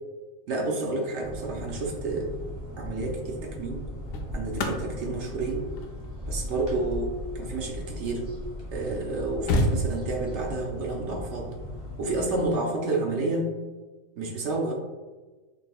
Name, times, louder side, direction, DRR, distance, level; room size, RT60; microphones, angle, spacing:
voice 1, 0.5-2.3 2.8-3.9 4.3-5.7 6.3-8.3 8.7-11.5 12.0-13.5 14.2-14.7, right 2 dB, 60° right, 1 dB, 0.9 m, -30 dB
sound 1, 1.2-12.5, left 1 dB, 30° right, 1.5 m, -38 dB
sound 2, 2.5-2.8 3.7-8.3 8.8-8.9 9.1-10.4 12.1-12.3, left 1 dB, 75° left, 1.0 m, -31 dB
5.2 x 2.7 x 2.3 m, 1.2 s
omnidirectional pair, 1.5 m